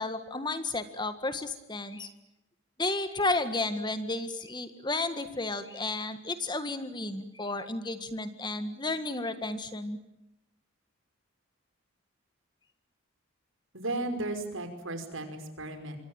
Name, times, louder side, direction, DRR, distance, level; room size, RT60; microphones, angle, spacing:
voice 1, 0.0-2.1 2.8-10.0, left 2 dB, 20° left, 10 dB, 1.7 m, -32 dB
voice 2, 13.7-16.0, right 2 dB, 70° right, 8 dB, 5.5 m, -35 dB
27.0 x 24.0 x 8.8 m, 0.88 s
head